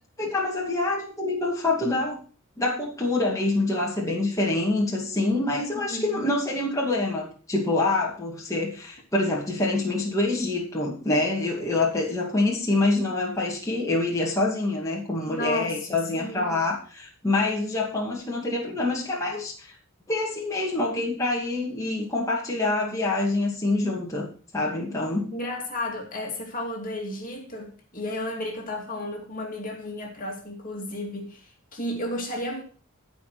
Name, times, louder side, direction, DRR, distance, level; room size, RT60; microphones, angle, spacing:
voice 1, 0.2-2.2 2.6-19.8 20.1-24.3 24.5-25.3, left 2 dB, 15° left, 2.3 m, -26 dB
voice 2, 5.7-6.3 15.2-16.7 25.3-32.6, left 1 dB, 40° left, 2.4 m, -33 dB
14.0 x 5.3 x 6.0 m
head